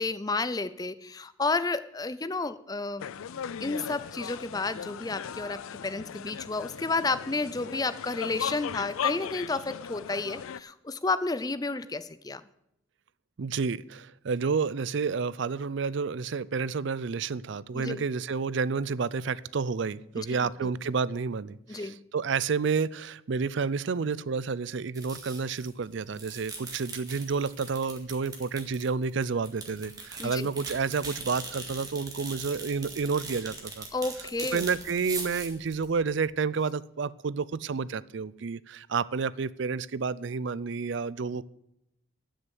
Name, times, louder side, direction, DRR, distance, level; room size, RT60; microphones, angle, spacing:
voice 1, 0.0-3.1 3.6-12.4 17.7-18.0 20.2-20.7 21.7-22.0 30.2-30.5 33.9-34.6, left 3 dB, 20° left, 15 dB, 0.5 m, -31 dB
sound 1, 3.0-10.6, left 8 dB, 80° left, 0.4 m, -37 dB
voice 2, 13.4-33.9 34.5-41.4, right 5 dB, 55° right, 19 dB, 0.4 m, -30 dB
sound 2, 24.9-25.8 26.1-36.3, right 4 dB, 20° right, 2.0 m, -41 dB
12.0 x 6.5 x 8.1 m, 0.81 s
head